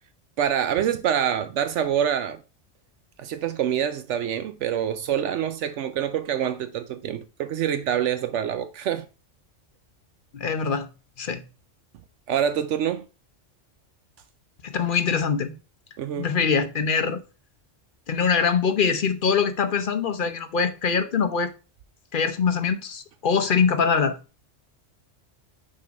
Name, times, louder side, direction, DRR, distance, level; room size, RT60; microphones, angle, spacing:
voice 1, 0.4-2.4 3.2-9.1 12.3-13.1 16.0-16.3, right 9 dB, 75° right, 0.9 m, -26 dB
voice 2, 10.3-10.9 11.2-11.4 14.6-15.5 16.2-17.2 18.1-21.5 22.1-24.2, left 6 dB, 50° left, 0.8 m, -23 dB
6.2 x 3.9 x 5.0 m
omnidirectional pair, 1.3 m